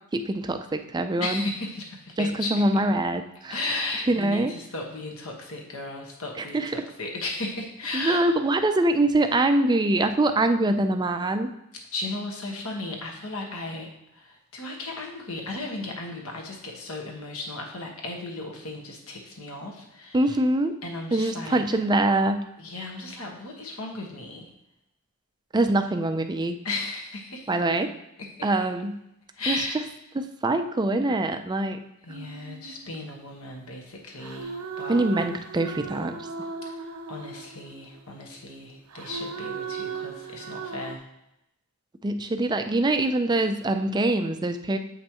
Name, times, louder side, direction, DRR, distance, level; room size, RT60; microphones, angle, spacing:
voice 1, 0.1-1.4 2.2-3.6 4.1-4.5 6.5-6.8 7.9-11.5 20.1-20.7 21.1-22.4 25.5-26.6 27.5-27.9 28.4-29.0 29.5-29.6 30.1-31.8 34.9-36.1 42.0-44.8, right 2 dB, 20° right, 8 dB, 0.4 m, -24 dB
voice 2, 1.2-2.6 3.5-8.3 11.9-20.2 20.8-21.8 22.6-24.5 26.6-27.5 29.3-29.8 32.0-35.0 36.7-41.0, left 2 dB, 70° left, 1 dB, 1.4 m, -35 dB
sound 1, 32.1-33.6 34.2-38.0 38.9-41.0, right 5 dB, 85° right, 0.6 m, -37 dB
7.8 x 5.4 x 3.0 m, 0.86 s
head